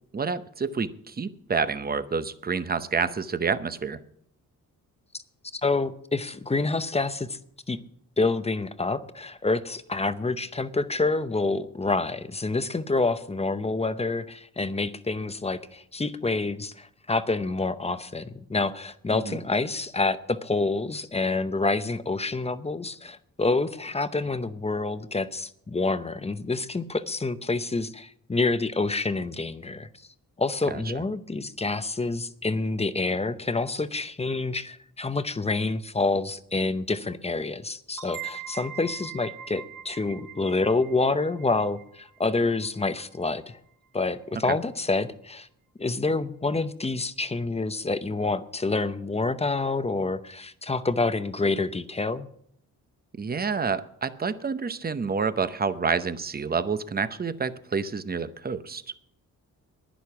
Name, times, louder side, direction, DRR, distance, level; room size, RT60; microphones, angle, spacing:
voice 1, 0.1-4.0 19.1-19.4 30.7-30.8 44.5-44.6 53.1-58.8, right 5 dB, 25° right, 13 dB, 0.8 m, -28 dB
voice 2, 5.5-7.4 7.7-7.8 8.2-29.9 30.4-43.6 43.9-45.5 45.8-52.3, left 3 dB, 15° left, 12 dB, 0.7 m, -27 dB
sound 1, 38.0-43.4, right 8 dB, 60° right, 1.6 m, -42 dB
11.0 x 10.5 x 5.9 m, 0.67 s
cardioid pair, 100°, 36 cm